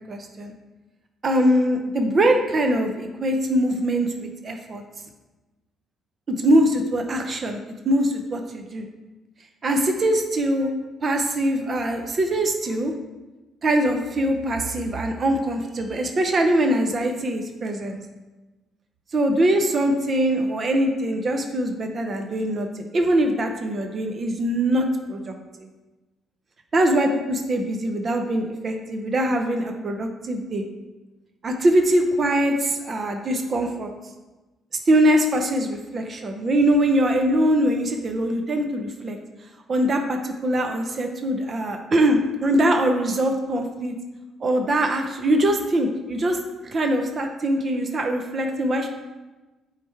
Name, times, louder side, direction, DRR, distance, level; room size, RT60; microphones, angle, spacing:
voice 1, 0.1-0.5 1.2-4.8 6.3-8.9 9.6-10.7 11.0-12.9 13.6-18.0 19.1-25.7 26.7-30.6 31.4-33.9 34.9-39.2 39.7-44.0 44.4-46.4 46.6-48.9, right 1 dB, 30° right, 4 dB, 0.6 m, -22 dB
8.9 x 3.2 x 4.4 m, 1.2 s
cardioid pair, 155°, 0 cm